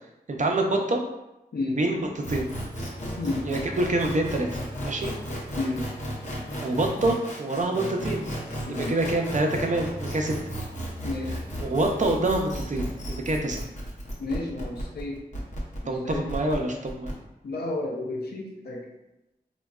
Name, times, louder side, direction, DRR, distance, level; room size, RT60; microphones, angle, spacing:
voice 1, 0.3-1.0 1.7-2.5 3.4-4.5 4.8-5.1 6.6-8.3 8.7-10.4 11.6-13.7 15.9-17.1, right 2 dB, 50° right, 2 dB, 0.5 m, -26 dB
sound 1, 2.2-17.1, equal, 45° left, 0.7 m, -34 dB
voice 2, 14.2-15.2 15.8-16.3 17.4-18.8, left 2 dB, 85° left, -2 dB, 0.5 m, -31 dB
3.7 x 2.1 x 2.3 m, 0.93 s
wide cardioid pair, 65°, 16 cm